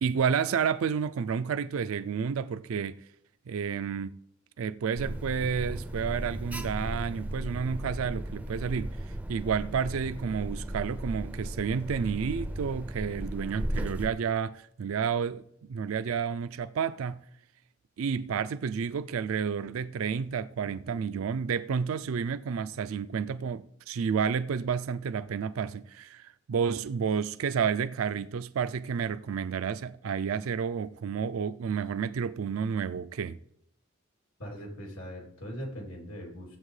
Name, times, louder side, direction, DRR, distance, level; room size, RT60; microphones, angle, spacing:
voice 1, 0.0-3.0 3.5-4.1 4.6-8.9 9.3-17.2 18.0-33.4, right 6 dB, 80° right, 0.4 m, -30 dB
Alarm, 5.0-14.1, right 1 dB, 5° right, 0.4 m, -36 dB
voice 2, 34.4-36.6, equal, 90° left, 3.0 m, -40 dB
16.5 x 8.0 x 3.2 m
head